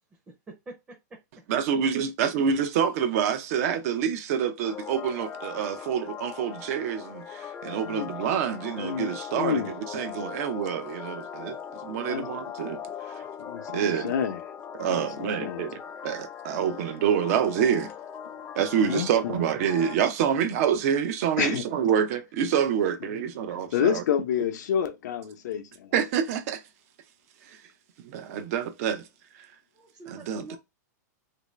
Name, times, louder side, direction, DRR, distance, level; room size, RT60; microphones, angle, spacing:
voice 1, 0.5-1.0 29.7-30.6, right 3 dB, 15° right, 0.7 m, -44 dB
voice 2, 1.5-11.6 11.8-12.8 13.1-13.2 13.7-14.1 14.8-17.9 18.6-24.0 25.9-26.6 28.0-29.0 29.4-29.5 30.1-30.6, right 8 dB, 55° right, 0.6 m, -27 dB
sound 1, 4.6-20.0, left 8 dB, 15° left, 0.3 m, -40 dB
voice 3, 7.8-8.1 8.8-9.7 11.9-12.3 13.5-14.4 14.9-15.6 18.9-19.3 21.4-21.7 23.1-23.2 23.5-25.9, left 8 dB, 70° left, 0.7 m, -29 dB
3.0 x 2.7 x 3.2 m
hypercardioid pair, 140°, 10 cm